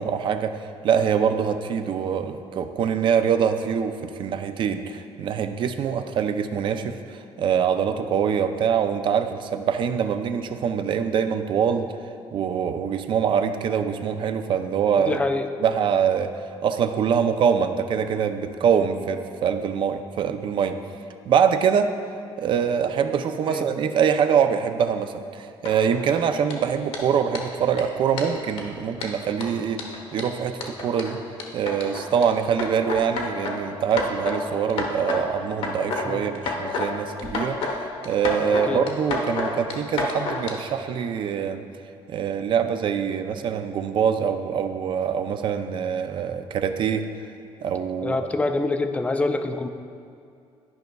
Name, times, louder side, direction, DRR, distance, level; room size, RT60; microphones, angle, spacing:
voice 1, 0.0-11.9 12.3-15.2 15.6-16.3 16.6-20.8 21.3-21.9 22.4-29.8 30.1-31.2 31.5-41.6 42.1-47.1 47.6-48.2, right 7 dB, 55° right, 8 dB, 0.4 m, -24 dB
voice 2, 15.0-15.5 23.5-23.7 36.1-36.2 38.7-38.8 48.0-49.7, left 2 dB, 15° left, 7 dB, 0.3 m, -25 dB
sound 1, 25.7-26.1 26.5-26.6 26.9-27.0 27.4-27.5 27.8-27.9 28.2-28.6 29.0-32.2 32.6-33.5 33.9-34.4 34.7-35.2 35.5-36.1 36.4-36.9 37.2-37.7 38.0-40.5, left 3 dB, 75° left, 1.0 m, -29 dB
11.5 x 5.3 x 2.3 m, 2.4 s
cardioid pair, 130°, 10 cm